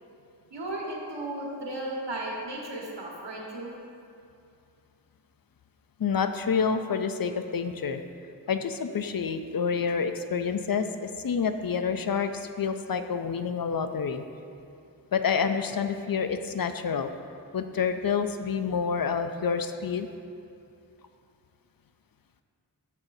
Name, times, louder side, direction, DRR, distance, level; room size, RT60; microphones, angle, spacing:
voice 1, 0.5-3.7, right 1 dB, 85° right, -3 dB, 1.5 m, -35 dB
voice 2, 6.0-8.0 8.5-14.2 15.1-17.1 17.5-20.1, left 6 dB, 55° left, 8 dB, 0.5 m, -28 dB
10.5 x 7.3 x 2.7 m, 2.5 s
wide cardioid pair, 50°, 42 cm